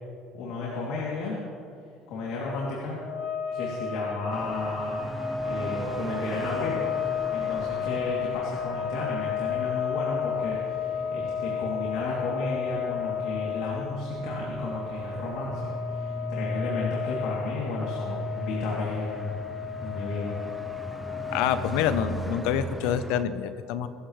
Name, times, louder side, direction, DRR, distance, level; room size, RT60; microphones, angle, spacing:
voice 1, 0.3-1.3 2.1-3.0 3.5-5.0 5.4-19.3 19.8-20.4, left 3 dB, 65° left, -5 dB, 3.2 m, -33 dB
sound 1, 3.0-22.7, left 7 dB, 50° left, 2.0 m, -33 dB
sound 2, 4.3-23.2, right 1 dB, 5° right, 0.7 m, -38 dB
voice 2, 21.3-23.9, left 9 dB, 80° left, 11 dB, 1.0 m, -27 dB
24.0 x 14.0 x 3.4 m, 2.5 s
cardioid pair, 180°, 0 cm